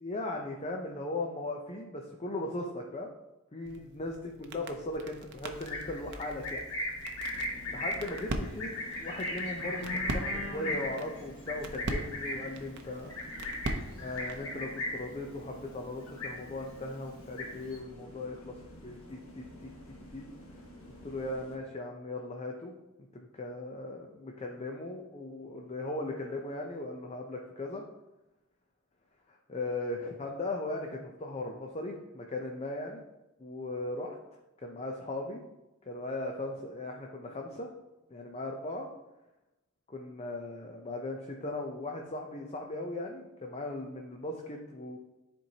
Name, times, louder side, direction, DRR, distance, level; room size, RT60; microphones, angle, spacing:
voice 1, 0.0-3.1 3.5-6.6 7.7-8.7 9.0-13.1 14.0-18.5 18.8-20.3 21.0-22.7 23.1-27.8 29.3-33.0 33.4-34.2 34.6-35.4 35.9-37.7 38.1-38.9 39.9-45.0, left 2 dB, 30° left, 1 dB, 0.6 m, -38 dB
sound 1, 3.6-14.5, right 2 dB, 55° right, 0.7 m, -41 dB
Livestock farm animals working animals, 5.5-15.2 15.5-16.7 17.1-17.8, left 1 dB, 90° left, 2.0 m, -37 dB
sound 2, 7.2-21.6, equal, 70° left, 1.3 m, -51 dB
10.5 x 4.5 x 2.8 m, 0.99 s
head